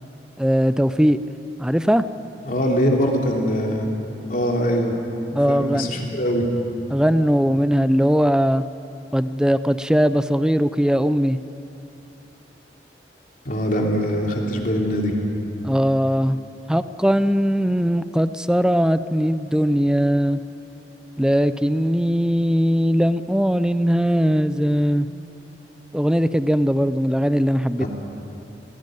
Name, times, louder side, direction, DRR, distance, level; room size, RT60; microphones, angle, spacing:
voice 1, 0.4-1.2 1.6-2.0 5.4-5.9 6.9-8.6 9.1-11.4 15.6-16.4 16.7-20.4 21.2-25.1 25.9-27.9, equal, 5° right, 13 dB, 0.5 m, -19 dB
voice 2, 2.4-3.9 4.3-4.9 5.3-6.5 13.4-15.1 27.8-27.9, equal, 50° left, 0 dB, 3.1 m, -22 dB
19.0 x 17.0 x 9.3 m, 2.9 s
head